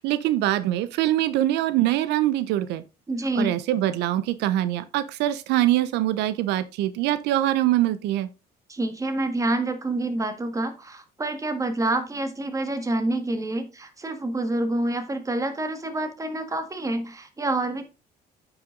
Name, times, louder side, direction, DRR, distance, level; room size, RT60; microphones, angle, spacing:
voice 1, 0.0-2.8 3.4-8.3, right 14 dB, 85° right, 0.7 m, -23 dB
voice 2, 3.1-3.6 8.7-17.8, right 2 dB, 20° right, 1.6 m, -27 dB
9.1 x 5.9 x 3.7 m
cardioid pair, 110°, 17 cm